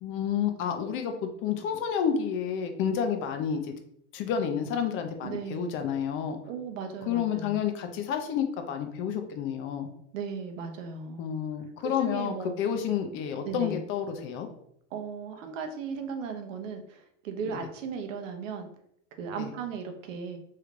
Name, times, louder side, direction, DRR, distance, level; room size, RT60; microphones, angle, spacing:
voice 1, 0.0-3.7 4.1-6.4 7.0-9.9 11.2-14.5 19.4-19.5, left 8 dB, 35° left, 6 dB, 0.4 m, -30 dB
voice 2, 5.2-5.7 6.4-7.6 10.1-11.2 11.8-12.5 13.4-13.8 14.9-18.7 19.2-20.4, right 5 dB, 90° right, 5 dB, 0.7 m, -36 dB
3.2 x 3.1 x 2.4 m, 0.71 s
supercardioid pair, 140°, 37 cm